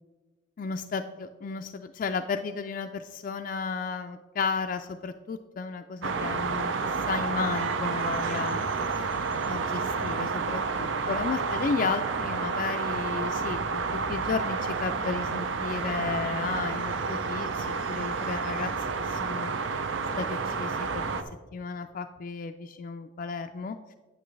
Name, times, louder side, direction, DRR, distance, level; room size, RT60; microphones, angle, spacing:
voice 1, 0.6-6.7 7.1-9.1 9.5-18.7 19.0-19.5 20.2-21.0 21.5-23.8, left 5 dB, 45° left, 6 dB, 0.3 m, -33 dB
sound 1, 6.0-21.2, right 4 dB, 85° right, 0.6 m, -30 dB
9.2 x 9.1 x 3.2 m, 1.3 s
head